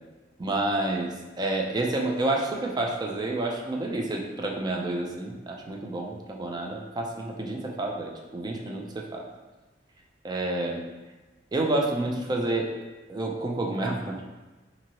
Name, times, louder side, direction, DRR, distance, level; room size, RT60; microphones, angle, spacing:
voice 1, 0.4-9.3 10.2-10.8 11.5-12.7 13.1-14.4, right 2 dB, 25° right, 0 dB, 0.3 m, -29 dB
2.7 x 2.7 x 2.9 m, 1.2 s
head